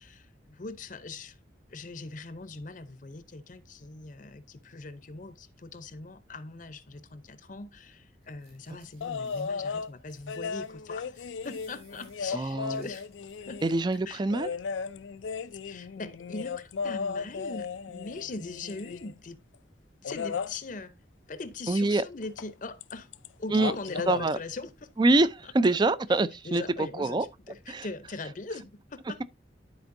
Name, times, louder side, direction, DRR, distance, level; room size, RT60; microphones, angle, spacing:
voice 1, 0.0-1.4 1.7-13.0 13.4-13.6 14.1-14.2 15.5-19.4 20.0-20.9 21.3-23.1 23.4-24.9 25.4-25.5 26.2-27.2 27.5-29.2, left 3 dB, 45° left, 0.7 m, -41 dB
sound 1, 8.2-14.1, right 4 dB, 55° right, 4.5 m, -62 dB
sound 2, 9.0-9.9 10.3-13.8 14.3-19.2 20.0-20.5 22.4-22.5 22.8-23.3 23.5-24.2 25.6-25.7, left 5 dB, 90° left, 0.4 m, -35 dB
voice 2, 12.3-12.9 13.6-14.5 21.7-22.0 23.5-23.7 24.1-24.4 25.0-25.3 25.5-26.6 27.0-27.3 27.7-27.9, right 2 dB, 25° right, 0.4 m, -24 dB
12.5 x 4.3 x 2.6 m
head